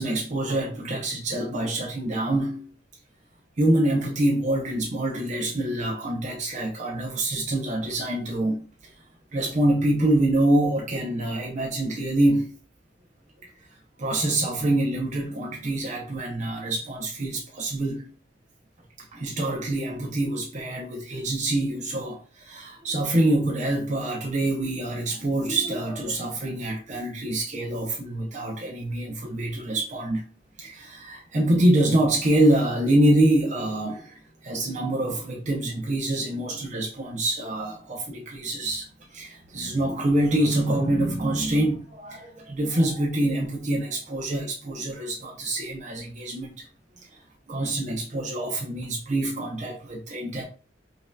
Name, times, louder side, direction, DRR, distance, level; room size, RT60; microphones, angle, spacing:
voice 1, 0.0-2.7 3.6-8.6 9.3-12.5 14.0-18.1 19.1-30.2 30.6-38.9 39.1-46.6 47.5-50.4, right 1 dB, 40° right, 0.6 m, -25 dB
5.3 x 2.7 x 2.3 m
head